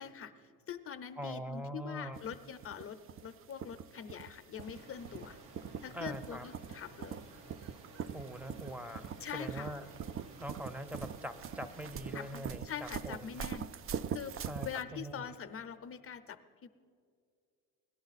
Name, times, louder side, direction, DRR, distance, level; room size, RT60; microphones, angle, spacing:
voice 1, 0.0-5.4 5.8-7.2 9.2-9.7 12.1-13.7 14.1-14.4 14.6-16.7, left 8 dB, 40° left, 10 dB, 0.6 m, -44 dB
voice 2, 1.2-2.2 5.9-6.4 8.1-9.9 10.4-12.6 13.0-13.5 14.5-15.2, right 1 dB, 5° right, 12 dB, 0.7 m, -43 dB
sound 1, 2.1-14.8, right 8 dB, 40° right, 0.4 m, -43 dB
sound 2, 4.6-12.3, right 2 dB, 80° right, 1.9 m, -55 dB
18.0 x 11.5 x 4.1 m, 2.3 s
cardioid pair, 90°, 36 cm